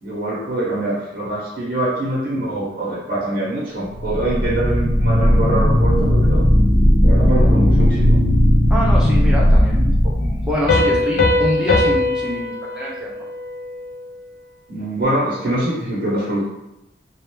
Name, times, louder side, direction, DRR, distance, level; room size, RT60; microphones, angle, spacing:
voice 1, 0.0-6.4 7.0-8.2 14.7-16.4, right 1 dB, 55° right, -8 dB, 0.7 m, -24 dB
sound 1, 3.9-11.0, equal, 25° right, 0.8 m, -16 dB
voice 2, 8.7-13.3, equal, 5° right, -5 dB, 0.4 m, -25 dB
Piano, 10.7-14.1, left 2 dB, 60° left, 0.4 m, -20 dB
2.2 x 2.1 x 2.9 m, 0.88 s
head